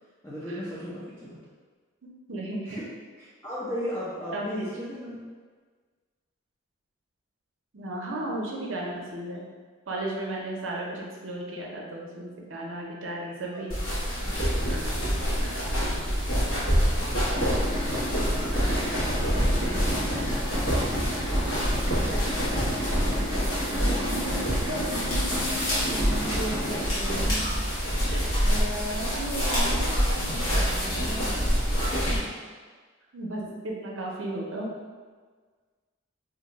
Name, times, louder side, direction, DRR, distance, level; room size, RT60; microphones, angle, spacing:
voice 1, 0.2-1.4 2.7-2.8 3.2-5.2 13.5-13.7 18.9-21.2, equal, 10° left, -10 dB, 0.5 m, -37 dB
voice 2, 2.0-2.8 4.3-4.6 7.7-9.4 9.9-13.8 23.8-27.5 28.5-31.4 33.1-34.7, right 1 dB, 65° right, -2 dB, 0.6 m, -35 dB
sound 1, 13.7-32.2, equal, 75° left, 1.1 m, -26 dB
Idling, 17.3-26.9, equal, 20° right, 0.7 m, -33 dB
2.6 x 2.2 x 3.9 m, 1.5 s
head